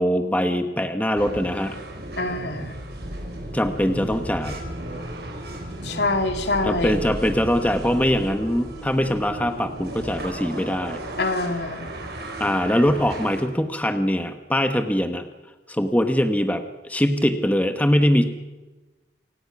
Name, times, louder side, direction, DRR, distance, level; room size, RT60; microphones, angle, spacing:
voice 1, 0.0-1.8 3.5-4.6 6.6-11.0 12.4-15.3 15.7-18.2, equal, 10° left, 7 dB, 1.1 m, -22 dB
sound 1, 1.2-13.4, right 1 dB, 70° right, 4.7 m, -35 dB
voice 2, 2.2-2.8 5.8-7.0 11.2-11.8, left 2 dB, 80° left, 6 dB, 2.5 m, -25 dB
28.0 x 17.0 x 6.0 m, 1.2 s
head